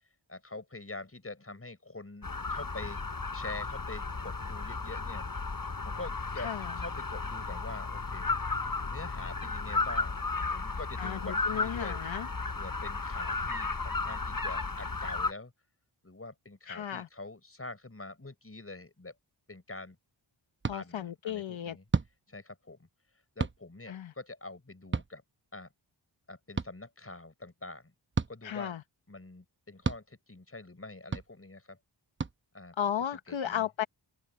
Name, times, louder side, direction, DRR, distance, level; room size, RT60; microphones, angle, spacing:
voice 1, 0.3-3.0 3.3-5.2 5.8-6.5 6.8-8.3 8.8-10.1 10.5-12.0 12.5-15.5 16.0-19.1 19.5-20.0 20.7-21.8 22.3-22.9 23.3-25.2 25.5-25.7 26.3-27.9 28.3-28.7 29.1-31.8 32.5-32.8 33.3-33.7, left 2 dB, 30° left, 6.4 m, -45 dB
sound 1, 2.2-15.3, left 3 dB, 45° left, 7.4 m, -34 dB
voice 2, 6.4-6.7 11.0-12.3 16.7-17.1 20.7-21.8 23.9-24.1 28.4-28.8 32.8-33.8, left 9 dB, 70° left, 0.9 m, -34 dB
sound 2, 20.6-20.8 21.9-22.1 23.4-23.6 24.9-25.1 26.6-26.7 28.1-28.3 29.8-30.0 31.1-31.3 32.2-32.3, right 4 dB, 25° right, 0.8 m, -30 dB
open air
wide cardioid pair, 75°, 48 cm